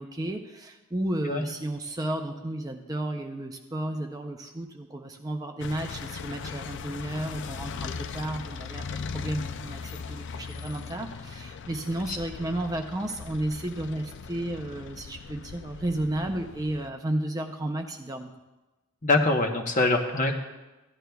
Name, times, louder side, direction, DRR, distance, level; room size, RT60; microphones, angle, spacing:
voice 1, 0.0-18.3, right 1 dB, 15° right, 4 dB, 0.5 m, -33 dB
sound 1, 5.6-16.9, left 5 dB, 55° left, 0.4 m, -39 dB
voice 2, 19.0-20.3, left 2 dB, 35° left, 3 dB, 1.0 m, -24 dB
16.0 x 11.0 x 2.3 m, 1.1 s
head